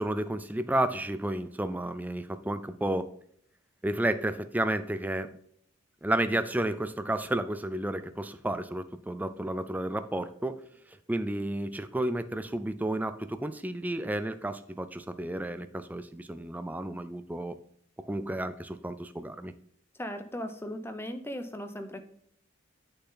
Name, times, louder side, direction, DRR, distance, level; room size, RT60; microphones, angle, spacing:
voice 1, 0.0-3.1 3.8-5.3 6.0-10.6 11.1-17.6 18.0-19.5, right 1 dB, 10° right, 10 dB, 0.4 m, -31 dB
voice 2, 20.0-22.1, equal, 10° left, 7 dB, 0.8 m, -37 dB
8.3 x 6.6 x 3.8 m, 0.66 s
head